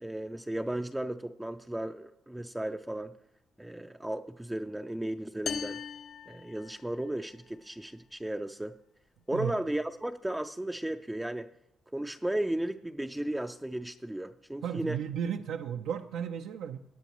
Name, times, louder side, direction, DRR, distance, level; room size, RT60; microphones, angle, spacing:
voice 1, 0.0-3.1 3.6-5.8 6.3-8.8 9.3-11.5 11.9-15.0, right 1 dB, 10° right, 6 dB, 0.4 m, -35 dB
sound 1, 5.5-7.2, left 6 dB, 55° left, 0.5 m, -39 dB
voice 2, 14.6-16.8, right 8 dB, 85° right, 5 dB, 0.6 m, -34 dB
17.5 x 9.2 x 3.0 m, 0.82 s
cardioid pair, 90°, 0 cm